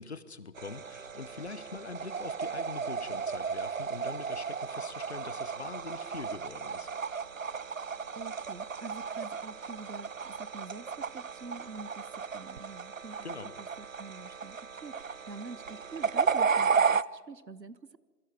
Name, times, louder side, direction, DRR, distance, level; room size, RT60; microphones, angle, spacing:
voice 1, 0.0-6.9 13.2-13.5, left 4 dB, 40° left, 14 dB, 1.1 m, -43 dB
sound 1, 0.6-17.0, right 6 dB, 55° right, 0.5 m, -34 dB
voice 2, 8.1-13.3 13.6-18.0, right 4 dB, 80° right, 17 dB, 1.2 m, -46 dB
27.0 x 23.5 x 4.9 m, 1.5 s
figure-of-eight pair, 150°, 49 cm